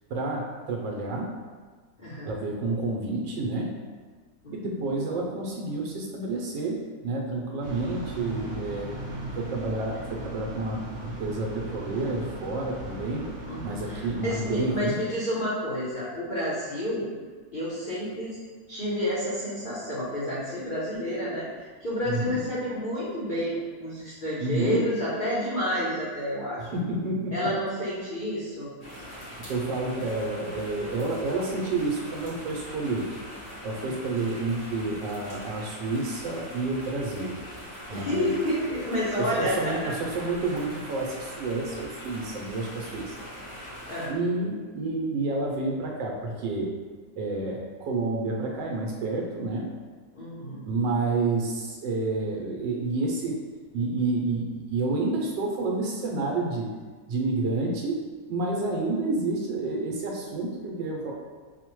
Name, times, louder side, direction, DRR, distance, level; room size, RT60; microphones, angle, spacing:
voice 1, 0.1-1.3 2.3-3.7 4.5-8.9 9.4-13.3 13.6-15.0 22.0-22.4 24.4-24.8 26.6-27.5 29.1-33.1 33.6-37.3 37.9-38.3 39.2-43.2 44.1-46.7 47.2-49.7 50.6-53.4 53.7-56.7 57.1-58.0 58.3-61.1, right 3 dB, 80° right, -1 dB, 1.3 m, -29 dB
voice 2, 2.0-2.3 4.4-4.6 13.4-17.1 17.5-18.4 18.7-26.7 27.3-28.7 33.8-33.9 37.9-39.8 43.9-44.1 50.1-50.7, equal, 75° left, -9 dB, 0.4 m, -30 dB
sound 1, 7.6-14.8, right 2 dB, 45° right, 1.2 m, -38 dB
sound 2, 28.8-44.1, equal, 25° left, 0.5 m, -42 dB
5.1 x 2.1 x 2.9 m, 1.5 s
omnidirectional pair, 2.0 m